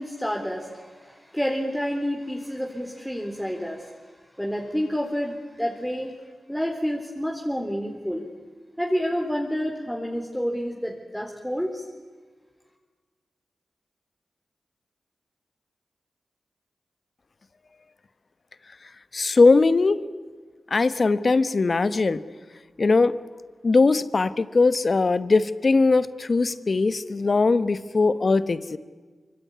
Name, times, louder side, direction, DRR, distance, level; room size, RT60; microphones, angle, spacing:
voice 1, 0.0-4.0 4.4-6.1 6.5-8.3 8.8-11.8, equal, ahead, 0 dB, 3.9 m, -29 dB
voice 2, 19.1-20.0 20.7-22.2 22.8-23.1 23.6-28.8, left 3 dB, 50° left, 15 dB, 1.3 m, -20 dB
25.0 x 24.5 x 9.6 m, 1.4 s
cardioid pair, 55°, 0 cm